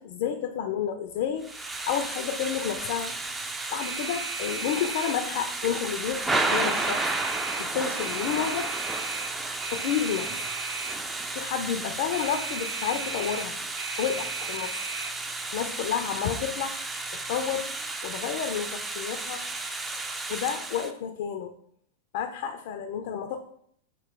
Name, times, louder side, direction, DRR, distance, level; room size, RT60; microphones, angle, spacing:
voice 1, 0.0-3.1 3.7-7.1 7.6-8.7 9.7-10.3 11.3-13.6 14.0-14.8 15.5-16.8 17.1-17.7 18.0-19.5 19.7-21.5 22.1-23.4, left 8 dB, 60° left, 7 dB, 0.4 m, -30 dB
sound 1, 1.1-17.9, right 5 dB, 45° right, 0.8 m, -40 dB
Thunder / Rain, 1.4-20.9, right 2 dB, 15° right, 0.4 m, -33 dB
3.0 x 2.9 x 4.6 m, 0.65 s
hypercardioid pair, 110°, 0 cm